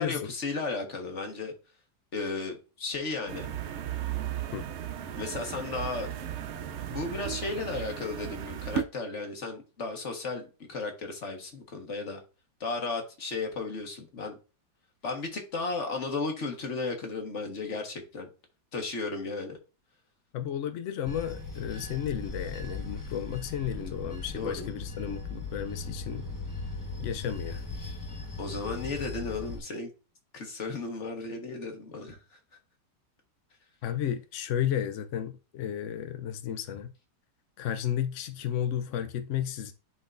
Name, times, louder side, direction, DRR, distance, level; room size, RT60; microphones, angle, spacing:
voice 1, 0.0-1.5 2.1-3.5 5.1-6.1 6.9-12.2 12.6-14.4 15.0-18.3 18.7-19.6 24.4-24.7 28.4-29.9 30.3-32.4, left 3 dB, 45° left, 1.8 m, -34 dB
sound 1, 3.3-8.8, right 9 dB, 65° right, 0.6 m, -35 dB
voice 2, 20.3-26.3 27.0-27.6 33.8-36.9 37.6-39.7, left 10 dB, 70° left, 0.7 m, -33 dB
Bell / Train, 21.1-29.6, left 3 dB, 15° left, 1.0 m, -38 dB
11.0 x 4.0 x 2.6 m
omnidirectional pair, 1.9 m